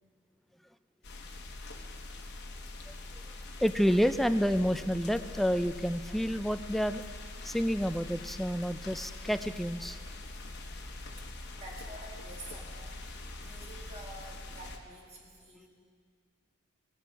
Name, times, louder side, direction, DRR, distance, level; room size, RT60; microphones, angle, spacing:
sound 1, 1.0-14.8, left 2 dB, 55° left, 1.1 m, -44 dB
voice 1, 3.6-7.0 7.4-10.0, equal, ahead, 10 dB, 0.3 m, -29 dB
voice 2, 11.6-15.7, right 1 dB, 30° right, -2 dB, 2.1 m, -49 dB
17.0 x 11.0 x 4.6 m, 2.1 s
head